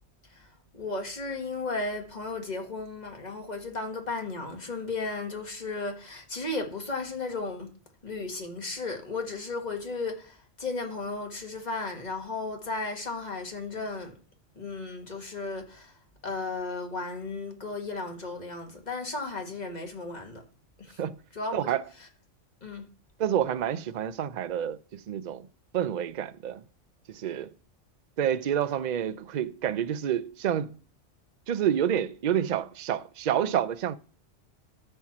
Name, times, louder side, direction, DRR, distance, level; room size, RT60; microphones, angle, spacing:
voice 1, 0.3-7.7 8.0-14.1 14.6-15.9 16.2-20.4 20.8-21.0 21.3-21.6 22.6-22.9, left 3 dB, 35° left, 1.8 m, -35 dB
voice 2, 23.2-25.5 25.7-26.6 27.1-27.5 28.2-30.8 31.5-34.0, right 10 dB, 55° right, 0.5 m, -28 dB
13.0 x 4.5 x 6.0 m
omnidirectional pair, 1.3 m